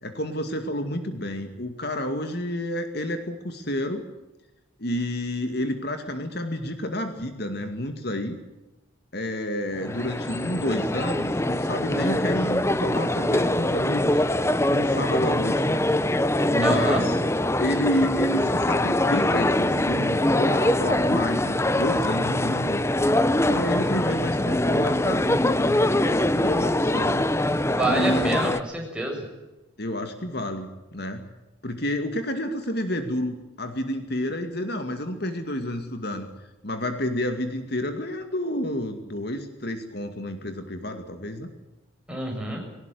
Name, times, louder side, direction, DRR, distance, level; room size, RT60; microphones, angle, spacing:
voice 1, 0.0-4.0 4.8-8.4 9.1-14.2 14.7-15.8 16.5-17.2 17.6-22.8 23.5-27.3 27.9-28.4 29.8-31.3 31.6-36.3 36.6-41.5, left 1 dB, 50° left, 7 dB, 2.3 m, -30 dB
sound 1, 9.8-28.6, left 1 dB, 15° left, 0.8 m, -23 dB
voice 2, 16.6-17.0 27.6-29.2 42.1-42.6, right 2 dB, 5° right, 0 dB, 7.1 m, -27 dB
21.5 x 19.0 x 9.4 m, 1.0 s
head